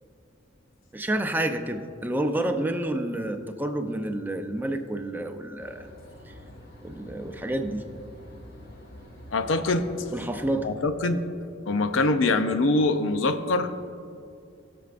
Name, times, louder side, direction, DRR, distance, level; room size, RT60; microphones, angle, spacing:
voice 1, 0.9-5.9 6.3-6.4 6.8-7.8 10.1-10.8, right 1 dB, 10° right, 6 dB, 0.5 m, -29 dB
sound 1, 5.6-10.7, equal, 55° left, 2.0 m, -46 dB
voice 2, 9.3-9.9 10.6-11.2 11.7-13.7, left 2 dB, 85° left, 8 dB, 0.6 m, -23 dB
20.0 x 6.9 x 2.5 m, 2.4 s
head